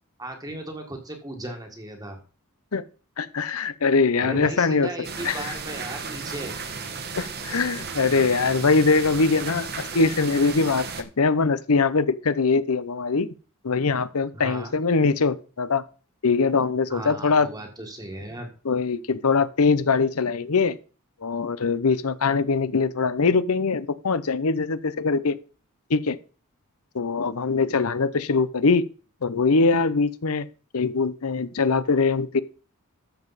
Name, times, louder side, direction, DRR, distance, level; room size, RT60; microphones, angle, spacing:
voice 1, 0.2-2.2 4.2-6.6 14.3-14.7 16.9-18.5, right 1 dB, 15° right, 3 dB, 1.7 m, -36 dB
voice 2, 3.2-4.9 5.2-5.4 7.1-13.3 13.6-15.8 16.2-17.5 18.6-20.8 21.2-25.4 25.9-26.2 26.9-28.8 29.2-30.5 30.7-32.4, left 4 dB, 75° left, 16 dB, 0.8 m, -22 dB
sound 1, 5.0-11.0, right 5 dB, 45° right, 1.3 m, -34 dB
13.0 x 7.1 x 4.1 m, 0.37 s
head